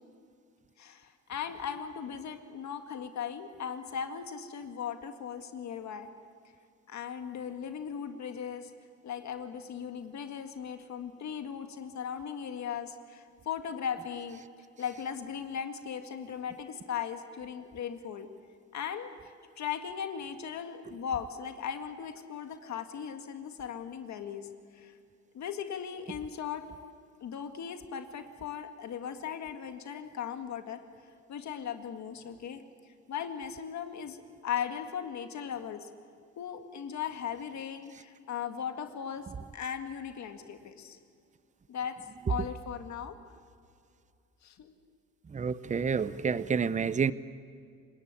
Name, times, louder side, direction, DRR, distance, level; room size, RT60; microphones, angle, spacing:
voice 1, 0.8-6.1 6.9-8.7 9.0-14.4 14.8-18.3 18.7-24.5 24.7-24.9 25.3-26.6 27.2-30.8 31.3-32.6 33.1-35.9 36.4-39.3 39.5-41.0 41.7-42.0 42.3-43.2 44.4-44.7, left 8 dB, 65° left, 6 dB, 2.0 m, -38 dB
voice 2, 45.3-47.1, right 6 dB, 25° right, 16 dB, 0.7 m, -29 dB
28.5 x 18.5 x 8.5 m, 2.4 s
cardioid pair, 90°, 30 cm